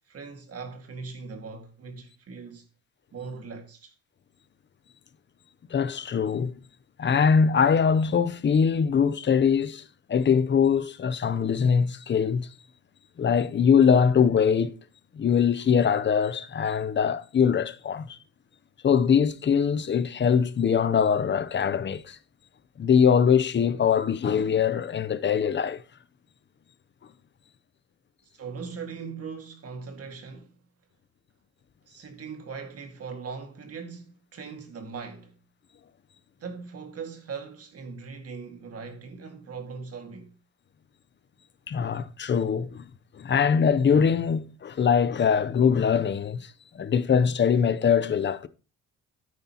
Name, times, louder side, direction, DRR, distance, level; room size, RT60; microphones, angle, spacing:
voice 1, 0.1-2.7 3.1-3.9 28.3-30.6 31.8-35.4 36.4-40.3, right 5 dB, 55° right, 2.0 m, -40 dB
voice 2, 5.7-6.5 7.0-9.8 10.1-12.5 13.2-14.8 15.1-18.2 18.8-22.2 22.8-25.8 41.7-42.8 43.2-46.5 46.7-48.5, left 7 dB, 40° left, 0.7 m, -22 dB
9.4 x 9.2 x 3.0 m
cardioid pair, 90°, 30 cm